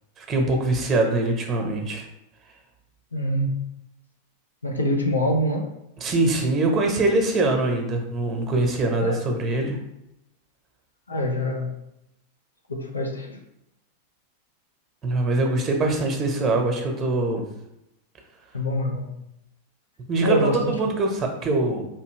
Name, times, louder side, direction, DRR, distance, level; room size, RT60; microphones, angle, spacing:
voice 1, 0.2-2.1 6.0-9.8 15.0-17.4 20.1-21.9, right 2 dB, 25° right, 3 dB, 0.9 m, -23 dB
voice 2, 3.1-3.6 4.6-5.7 9.0-9.2 11.1-11.7 12.7-13.4 18.5-19.1 20.2-20.6, equal, 80° left, 1 dB, 0.6 m, -24 dB
4.5 x 2.9 x 3.1 m, 0.86 s
figure-of-eight pair, 90°, 0 cm